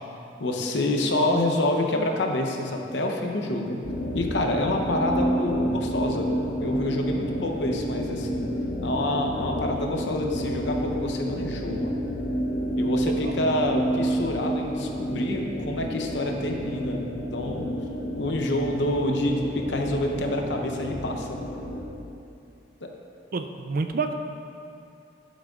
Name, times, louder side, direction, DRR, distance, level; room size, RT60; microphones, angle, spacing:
voice 1, 0.4-3.8 4.1-6.3 6.6-8.5 8.8-11.9 12.8-17.1 17.3-17.7 18.2-21.4 22.8-22.9, left 1 dB, 80° left, 2 dB, 0.8 m, -27 dB
sound 1, 3.8-21.9, equal, 45° left, 0.8 m, -30 dB
voice 2, 23.3-24.1, right 4 dB, 55° right, 6 dB, 0.4 m, -29 dB
11.5 x 6.3 x 2.4 m, 2.6 s
head